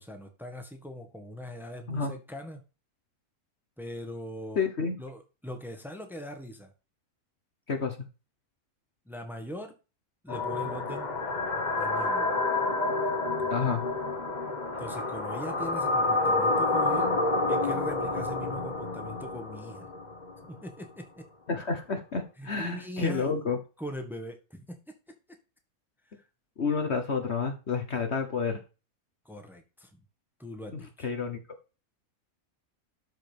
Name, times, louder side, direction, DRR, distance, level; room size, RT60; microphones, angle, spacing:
voice 1, 0.0-2.6 3.8-4.7 5.0-6.7 9.0-9.7 10.2-11.1 11.8-12.3 14.8-17.1 17.5-19.9 20.4-21.3 22.4-23.3 23.8-24.8 26.1-26.2 29.2-30.0 30.4-31.1, equal, ahead, 5 dB, 1.6 m, -41 dB
voice 2, 4.6-5.0 7.7-8.0 13.5-13.9 21.5-23.6 26.6-28.6 30.7-31.4, left 5 dB, 50° left, 6 dB, 1.4 m, -30 dB
sound 1, 10.3-20.4, left 2 dB, 30° left, 1.6 m, -29 dB
12.0 x 5.1 x 5.2 m, 0.32 s
omnidirectional pair, 1.5 m